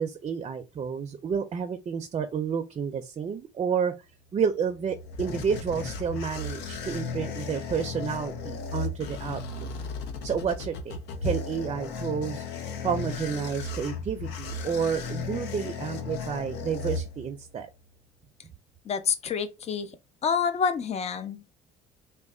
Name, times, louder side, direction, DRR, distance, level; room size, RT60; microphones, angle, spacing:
voice 1, 0.0-3.9 4.3-9.7 10.2-12.4 12.8-17.7, right 7 dB, 35° right, 0.5 m, -30 dB
sound 1, 4.6-17.6, left 4 dB, 90° left, 0.7 m, -35 dB
voice 2, 18.8-19.9 20.2-21.5, left 6 dB, 40° left, 0.6 m, -28 dB
3.1 x 2.2 x 3.7 m
cardioid pair, 110°, 17 cm